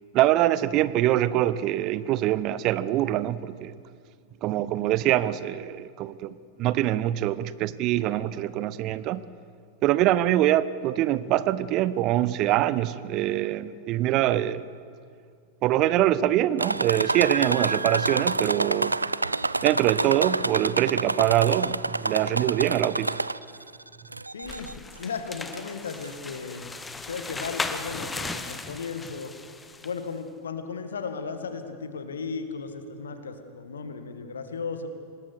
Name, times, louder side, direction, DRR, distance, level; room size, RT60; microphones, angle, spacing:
voice 1, 0.1-3.7 4.4-9.2 9.8-14.6 15.6-19.0 19.6-23.2, right 13 dB, 40° right, 17 dB, 0.7 m, -24 dB
sound 1, 16.6-23.6 24.1-24.7 25.5-25.6 26.0-26.1, right 2 dB, 80° right, 0.4 m, -28 dB
voice 2, 24.3-26.7 27.1-29.3 29.8-34.9, left 5 dB, 70° left, 8 dB, 1.9 m, -35 dB
sound 2, 24.4-30.0, left 3 dB, 10° left, 1.1 m, -37 dB
25.5 x 19.5 x 6.4 m, 2.2 s
figure-of-eight pair, 90°, 0 cm